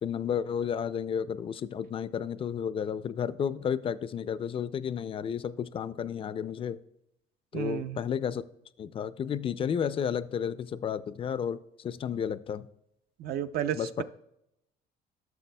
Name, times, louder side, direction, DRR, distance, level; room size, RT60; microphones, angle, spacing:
voice 1, 0.0-6.8 7.5-8.4 8.8-12.7 13.7-14.0, left 8 dB, 35° left, 15 dB, 0.4 m, -32 dB
voice 2, 7.5-8.0 13.2-14.0, right 10 dB, 65° right, 10 dB, 0.6 m, -32 dB
14.0 x 6.5 x 2.2 m, 0.82 s
cardioid pair, 110°, 17 cm